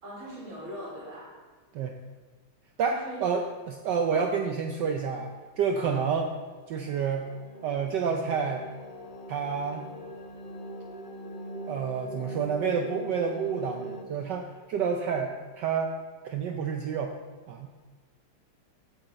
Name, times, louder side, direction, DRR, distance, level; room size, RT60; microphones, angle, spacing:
voice 1, 0.0-1.4 2.8-3.2 5.8-6.0, equal, 85° right, -7 dB, 5.3 m, -41 dB
voice 2, 2.8-6.3 6.7-7.3 7.6-8.7 9.3-9.8 11.7-15.9 16.2-17.1 17.5-17.7, right 6 dB, 70° right, 4 dB, 1.2 m, -29 dB
sound 1, 6.5-14.0, right 1 dB, 85° left, 0.4 m, -42 dB
16.0 x 7.0 x 4.0 m, 1.3 s
omnidirectional pair, 2.3 m